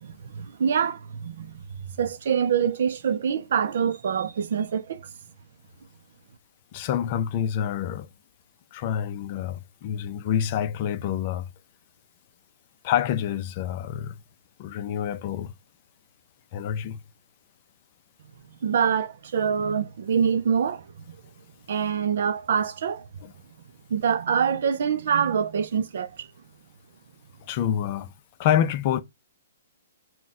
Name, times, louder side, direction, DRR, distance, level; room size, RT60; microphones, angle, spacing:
voice 1, 0.0-5.1 18.6-21.2 21.7-23.1 23.9-26.3, right 7 dB, 60° right, 0.5 m, -25 dB
voice 2, 6.7-8.1 8.7-11.5 12.8-14.2 14.6-15.5 16.5-17.0 27.5-28.1 28.4-29.0, left 9 dB, 35° left, 0.5 m, -27 dB
3.6 x 2.2 x 4.1 m
hypercardioid pair, 165°, 0 cm